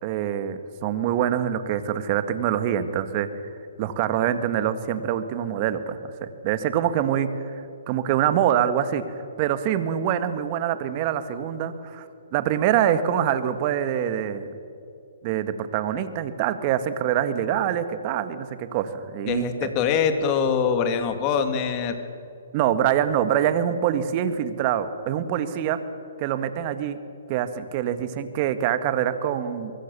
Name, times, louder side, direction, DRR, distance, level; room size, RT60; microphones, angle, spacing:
voice 1, 0.0-3.3 3.8-14.5 15.2-19.7 22.5-25.8 26.2-27.0 27.3-29.7, right 10 dB, 35° right, 11 dB, 1.8 m, -25 dB
voice 2, 19.3-22.0, left 6 dB, 30° left, 8 dB, 2.4 m, -23 dB
23.5 x 23.0 x 7.0 m, 2.6 s
hypercardioid pair, 145°, 0 cm